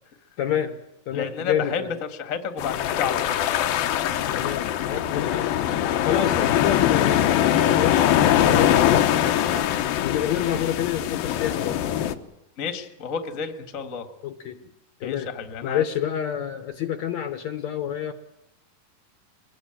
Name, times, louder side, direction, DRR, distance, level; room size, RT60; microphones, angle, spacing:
voice 1, 0.4-0.8 1.1-1.8 4.3-11.8 14.2-14.7 15.0-15.3 15.6-18.1, left 10 dB, 65° left, 8 dB, 2.1 m, -28 dB
voice 2, 1.1-3.4 12.6-14.1 15.0-15.8, left 6 dB, 30° left, 7 dB, 1.5 m, -31 dB
sound 1, 2.6-12.1, left 11 dB, 85° left, 2.9 m, -22 dB
23.5 x 20.5 x 8.9 m, 0.85 s
omnidirectional pair, 4.0 m